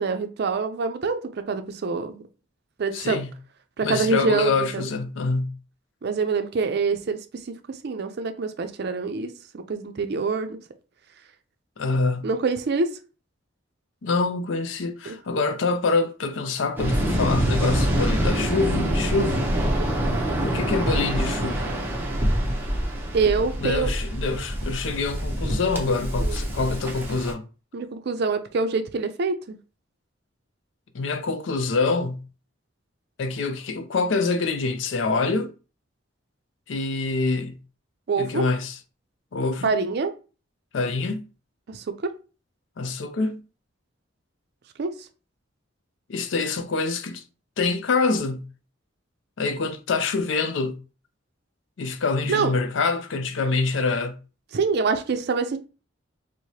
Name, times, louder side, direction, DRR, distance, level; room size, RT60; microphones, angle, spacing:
voice 1, 0.0-2.2 2.8-3.2 3.8-4.9 6.0-7.2 7.5-10.6 12.2-12.9 15.1-15.2 19.8-20.2 23.1-23.9 26.2-26.4 27.7-29.6 38.1-38.5 39.6-40.1 41.7-42.1 44.8-44.9 52.3-52.5 54.5-55.6, right 4 dB, 60° right, 0.4 m, -25 dB
voice 2, 2.9-3.3 3.8-5.6 11.8-12.3 14.0-19.5 20.4-21.7 23.6-27.5 30.9-32.3 33.2-35.5 36.7-37.6 38.2-38.8 39.3-39.7 40.7-41.3 42.8-43.4 46.1-47.2 47.6-48.5 49.4-50.8 51.8-54.2, left 3 dB, 75° left, 0.5 m, -25 dB
Waves surf, 16.8-27.3, equal, 10° right, 0.7 m, -25 dB
4.7 x 2.1 x 2.7 m
head